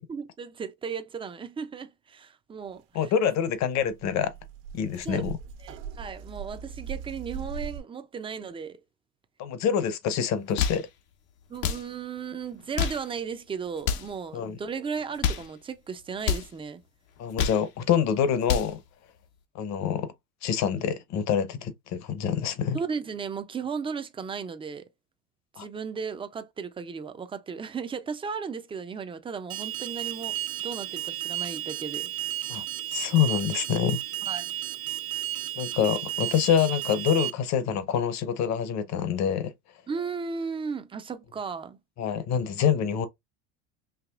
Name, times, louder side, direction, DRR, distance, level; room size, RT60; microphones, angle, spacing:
voice 1, 0.1-2.8 5.0-5.3 5.6-8.8 11.5-16.8 22.7-24.8 25.6-32.1 34.2-34.5 39.9-41.8, right 6 dB, 15° right, 0.4 m, -35 dB
voice 2, 2.9-4.3 4.7-5.4 9.4-10.9 14.3-14.6 17.2-18.8 19.5-20.1 20.4-22.8 25.6-25.7 32.5-32.6 32.9-34.0 35.6-39.5 42.0-43.1, left 8 dB, 45° left, 0.8 m, -26 dB
sound 1, 3.3-3.4 3.6-7.8, right 6 dB, 70° right, 1.0 m, -40 dB
sound 2, 10.4-10.9 11.5-11.9 12.6-13.1 13.8-14.2 15.0-15.5 16.2-16.5 17.2-17.7 18.2-18.8, left 7 dB, 80° left, 0.9 m, -28 dB
Alarm, 29.5-37.3, right 13 dB, 55° right, 0.7 m, -33 dB
4.9 x 2.9 x 2.3 m
supercardioid pair, 120°, 39 cm